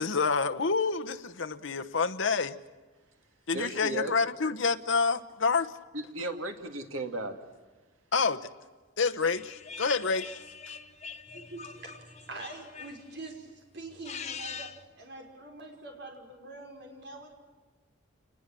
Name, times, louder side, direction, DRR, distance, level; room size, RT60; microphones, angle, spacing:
voice 1, 0.0-2.6 3.5-5.7 8.1-8.4 9.0-10.4 10.7-10.8, left 4 dB, 70° left, 9 dB, 1.0 m, -28 dB
voice 2, 3.5-4.1 5.9-7.4, right 2 dB, 90° right, 5 dB, 2.6 m, -35 dB
sound 1, 9.2-13.3 13.9-14.9, left 6 dB, 35° left, 1.2 m, -44 dB
voice 3, 11.3-17.3, right 2 dB, 55° right, 2 dB, 5.5 m, -45 dB
28.5 x 20.5 x 7.5 m, 1.3 s
head